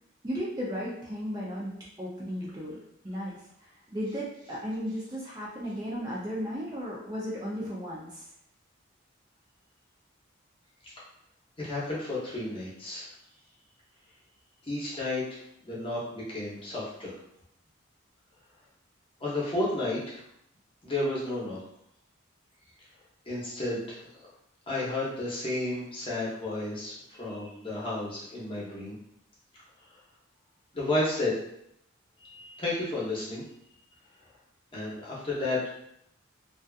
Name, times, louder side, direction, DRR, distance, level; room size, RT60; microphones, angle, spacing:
voice 1, 0.2-2.8 3.0-8.3, equal, 20° right, -6 dB, 0.4 m, -35 dB
voice 2, 11.6-13.1 14.6-17.1 19.2-20.2 20.8-21.6 23.3-24.1 24.7-29.0 30.7-31.4 32.2-33.4 34.7-35.6, left 2 dB, 25° left, -7 dB, 0.8 m, -32 dB
2.6 x 2.3 x 2.3 m, 0.74 s
head